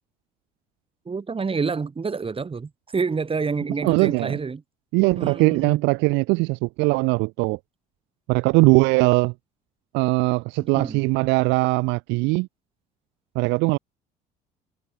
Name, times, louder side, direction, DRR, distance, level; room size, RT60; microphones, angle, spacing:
voice 1, 1.1-4.6 5.0-5.8 10.6-11.0, right 5 dB, 30° right, 4.5 m, -28 dB
voice 2, 3.8-4.4 4.9-7.6 8.3-9.3 9.9-12.5 13.4-13.8, right 26 dB, 75° right, 0.5 m, -20 dB
supercardioid pair, 70°, 19 cm